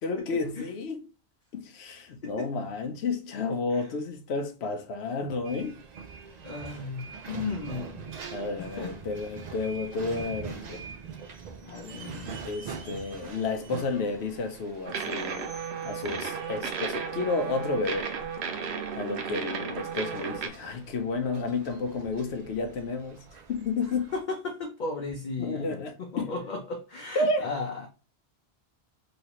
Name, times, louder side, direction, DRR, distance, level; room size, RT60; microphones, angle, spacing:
voice 1, 0.0-1.1 1.5-5.7 8.3-10.8 12.4-15.5 15.8-18.1 18.9-24.1 25.4-26.3 27.1-27.5, left 3 dB, 85° left, 0.9 m, -31 dB
sound 1, 5.4-24.2, right 5 dB, 55° right, 0.5 m, -44 dB
voice 2, 6.4-8.1 8.6-8.9 11.6-12.3 24.1-27.9, left 4 dB, 55° left, 0.6 m, -35 dB
sound 2, 14.9-20.5, right 6 dB, 80° right, 0.9 m, -34 dB
3.1 x 2.9 x 2.9 m
omnidirectional pair, 1.1 m